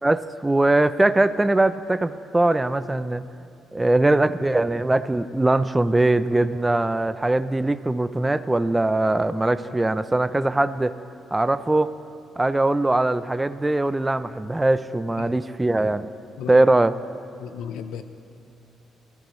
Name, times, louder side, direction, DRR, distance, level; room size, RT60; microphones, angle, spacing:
voice 1, 0.0-3.3 3.7-11.0 11.3-11.9 12.4-16.1 16.5-17.0, right 2 dB, 15° right, 13 dB, 0.5 m, -21 dB
voice 2, 17.4-18.0, left 9 dB, 90° left, 10 dB, 0.8 m, -34 dB
28.0 x 14.5 x 3.2 m, 2.5 s
cardioid pair, 90°, 0 cm